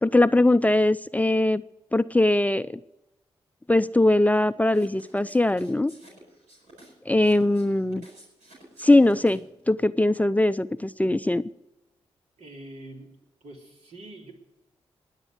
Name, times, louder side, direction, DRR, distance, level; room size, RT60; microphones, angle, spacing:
voice 1, 0.0-1.6 1.9-2.7 3.7-5.9 7.1-8.0 8.8-11.4, left 2 dB, 15° left, 13 dB, 0.5 m, -21 dB
sound 1, 4.7-9.6, right 1 dB, 90° right, 7.2 m, -52 dB
voice 2, 12.4-13.2 13.4-14.3, right 1 dB, 70° right, 0 dB, 3.7 m, -44 dB
20.5 x 8.2 x 8.0 m, 0.96 s
supercardioid pair, 40°, 12 cm